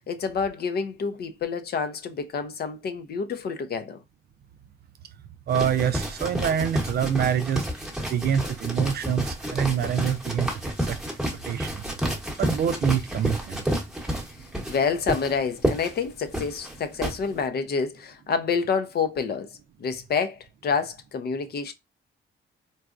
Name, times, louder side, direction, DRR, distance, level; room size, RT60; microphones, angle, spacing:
voice 1, 0.0-4.0 14.7-19.5 19.8-21.7, left 5 dB, 55° left, 0.6 m, -28 dB
sound 1, 5.5-17.2, right 1 dB, ahead, 1.0 m, -30 dB
voice 2, 5.5-7.7 8.1-10.5 10.8-11.0 11.4-11.8 12.4-13.6, right 8 dB, 55° right, 0.4 m, -26 dB
3.9 x 2.2 x 2.4 m
cardioid pair, 90°, 20 cm